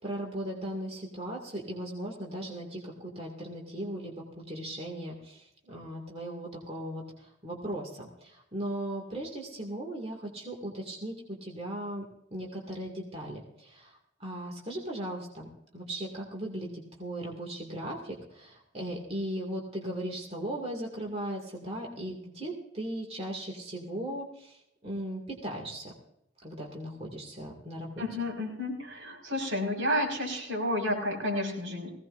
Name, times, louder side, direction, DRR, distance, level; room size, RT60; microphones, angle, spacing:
voice 1, 0.0-12.0 12.3-13.9 14.2-15.5 15.7-24.6 24.8-25.9 26.4-28.0, right 1 dB, 30° right, 0 dB, 2.3 m, -37 dB
voice 2, 28.0-31.9, left 1 dB, 85° right, -1 dB, 5.3 m, -31 dB
20.0 x 17.0 x 2.6 m, 0.79 s
head